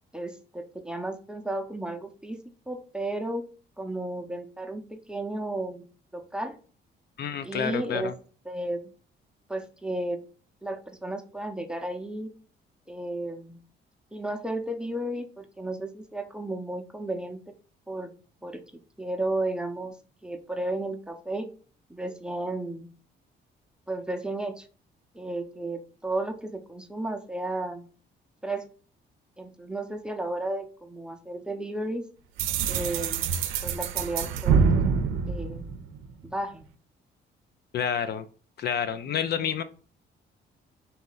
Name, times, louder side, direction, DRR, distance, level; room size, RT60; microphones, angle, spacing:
voice 1, 0.1-2.4 2.7-3.5 3.8-5.8 6.1-6.6 7.4-8.1 8.5-8.8 9.5-10.2 10.6-12.3 12.9-13.6 14.1-17.4 17.9-18.1 18.4-18.6 19.0-20.0 20.2-21.5 21.9-22.9 23.9-24.7 25.1-27.9 28.4-28.7 29.4-32.1 32.7-33.3 33.6-34.8 35.3-35.7 36.2-36.6, right 1 dB, 5° right, 5 dB, 0.6 m, -33 dB
voice 2, 7.2-8.1 37.7-38.2 38.6-39.6, left 8 dB, 55° left, 11 dB, 0.4 m, -29 dB
sound 1, 32.4-36.2, right 6 dB, 85° right, 0.5 m, -26 dB
4.1 x 2.7 x 3.8 m, 0.39 s
cardioid pair, 90°, 20 cm